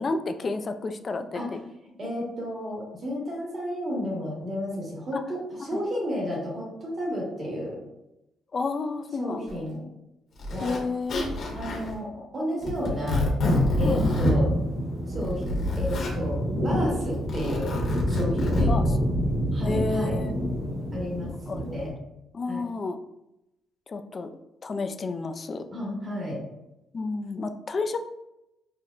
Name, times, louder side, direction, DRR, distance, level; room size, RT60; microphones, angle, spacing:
voice 1, 0.0-1.6 5.1-5.2 5.7-5.8 8.5-9.6 10.6-11.3 12.5-12.8 13.8-14.0 18.7-19.1 19.6-20.3 21.5-21.6 22.3-23.0 23.9-24.3 24.6-25.6 26.9-28.0, left 3 dB, 40° left, 8 dB, 0.3 m, -31 dB
voice 2, 2.0-7.8 9.2-9.8 10.5-10.8 11.5-13.3 13.8-14.5 15.1-17.8 18.1-18.9 19.5-20.2 20.9-21.9 22.5-22.6 25.7-26.4, equal, 40° right, -4 dB, 1.4 m, -32 dB
Zipper (clothing), 9.5-9.6 10.4-10.8 11.1-11.9 12.6-14.4 15.1-16.1 17.1-18.6, left 2 dB, 65° left, 1.1 m, -27 dB
sound 1, 14.2-21.9, equal, 60° right, 1.2 m, -27 dB
5.8 x 2.1 x 2.4 m, 0.90 s
cardioid pair, 90°, 0 cm